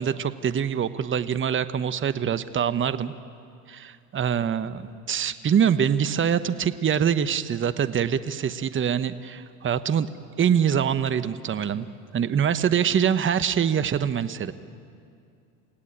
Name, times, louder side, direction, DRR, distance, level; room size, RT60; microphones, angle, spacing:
voice 1, 0.0-3.1 3.7-10.1 10.4-11.9 12.1-14.5, right 8 dB, 25° right, 13 dB, 1.1 m, -24 dB
29.0 x 17.5 x 8.7 m, 2.4 s
hypercardioid pair, 80°, 47 cm